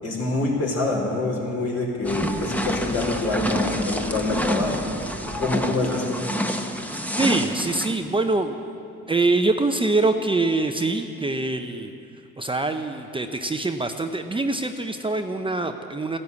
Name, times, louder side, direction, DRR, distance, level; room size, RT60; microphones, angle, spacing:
voice 1, 0.0-5.1 5.4-6.2, left 2 dB, 55° left, -2 dB, 4.3 m, -26 dB
sound 1, 2.1-7.9, equal, 5° left, 1.1 m, -28 dB
voice 2, 7.2-8.6 9.1-11.9 12.4-16.2, right 2 dB, 15° right, 6 dB, 0.7 m, -24 dB
14.5 x 10.5 x 8.2 m, 2.8 s
cardioid pair, 90°, 30 cm